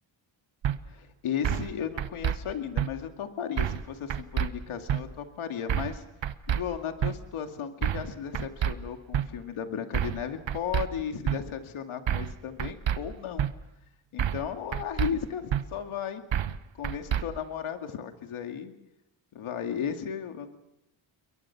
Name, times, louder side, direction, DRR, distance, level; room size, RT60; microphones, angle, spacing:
sound 1, 0.6-0.8 1.4-1.7 2.0-2.4 2.8-2.9 3.6-3.8 4.1-4.5 4.9-5.0 5.7-6.0 6.2-6.6 7.0-7.1 7.8-8.1 8.3-8.7 9.1-9.3 9.9-10.2 10.5-10.9 11.3-11.4 12.1-12.3 12.6-13.0 13.4-13.5 14.2-14.5 14.7-15.1 15.5-15.6 16.3-16.6 16.8-17.2, right 10 dB, 65° right, 1.3 m, -27 dB
voice 1, 0.9-6.0 6.5-13.5 14.1-16.2 16.7-18.7 19.3-20.6, left 8 dB, 85° left, 6 dB, 2.4 m, -35 dB
29.0 x 22.5 x 6.0 m, 0.83 s
cardioid pair, 75°, 48 cm